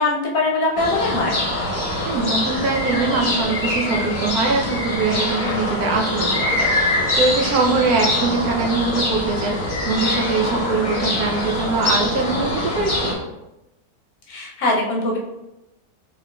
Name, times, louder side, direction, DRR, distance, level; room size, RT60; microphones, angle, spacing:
voice 1, 0.0-1.4 14.3-15.2, left 2 dB, 65° left, -2 dB, 1.2 m, -21 dB
sound 1, 0.8-13.1, left 1 dB, 35° left, 0.6 m, -23 dB
voice 2, 2.0-13.2, right 3 dB, 70° right, 0 dB, 1.0 m, -23 dB
4.6 x 3.6 x 2.2 m, 0.94 s
omnidirectional pair, 1.8 m